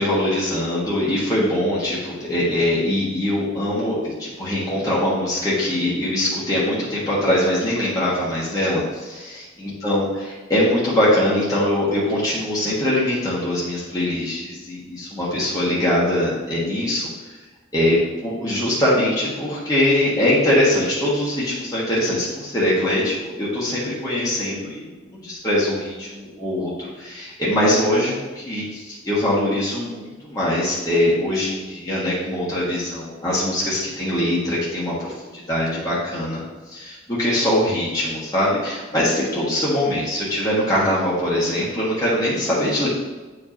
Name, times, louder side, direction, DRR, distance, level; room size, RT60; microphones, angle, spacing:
voice 1, 0.0-9.3 9.6-17.1 17.7-36.4 36.7-42.9, left 1 dB, 20° left, -8 dB, 1.5 m, -22 dB
8.5 x 5.0 x 2.9 m, 1.2 s
head